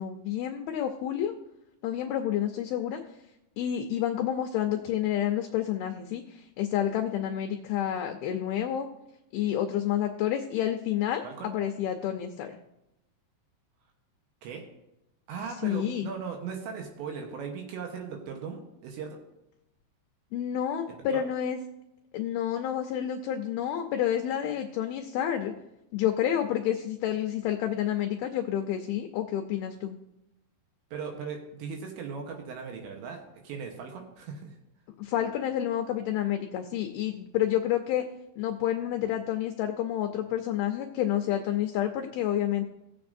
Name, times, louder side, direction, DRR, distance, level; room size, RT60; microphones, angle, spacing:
voice 1, 0.0-1.3 1.8-3.0 3.6-8.9 9.3-12.6 15.6-16.1 20.3-21.6 22.1-25.5 25.9-30.0 35.0-38.1 38.4-42.6, left 11 dB, 85° left, 5 dB, 2.2 m, -29 dB
voice 2, 15.3-19.2 21.1-21.3 30.9-34.5, right 6 dB, 80° right, 2 dB, 3.3 m, -38 dB
18.5 x 7.2 x 2.6 m, 0.89 s
omnidirectional pair, 5.2 m